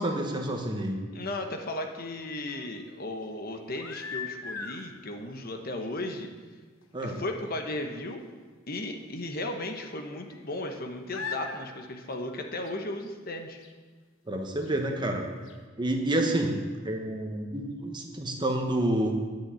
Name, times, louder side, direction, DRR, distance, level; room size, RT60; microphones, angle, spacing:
voice 1, 0.0-1.0 6.9-7.1 14.3-15.2 15.8-16.6 16.8-19.1, right 1 dB, 20° right, 2 dB, 1.2 m, -28 dB
voice 2, 1.1-6.3 7.0-8.2 8.7-13.6, left 1 dB, 45° left, 4 dB, 1.0 m, -35 dB
sound 1, 1.7-2.7 3.6-4.8 5.8-6.0 6.2-6.3 6.8-6.9 7.2-7.3 9.0-9.1 9.9-10.8 11.1-11.6 12.0-12.9 13.6-13.7 14.6-14.7 15.1-15.2 15.5-15.6, left 5 dB, 70° left, 1.2 m, -40 dB
10.5 x 6.2 x 8.3 m, 1.5 s
head